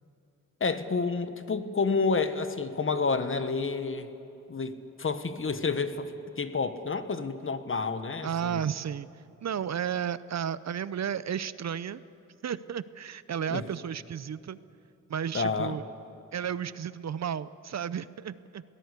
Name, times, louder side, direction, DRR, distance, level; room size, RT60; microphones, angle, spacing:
voice 1, 0.6-4.1 4.5-6.1 6.4-8.6 13.5-13.7 15.3-15.8, left 4 dB, 40° left, 10 dB, 1.2 m, -29 dB
voice 2, 8.2-9.1 9.4-12.0 12.4-14.6 15.1-15.8 16.3-18.6, right 8 dB, 55° right, 17 dB, 0.6 m, -33 dB
22.5 x 18.0 x 8.2 m, 2.9 s
wide cardioid pair, 110°, 33 cm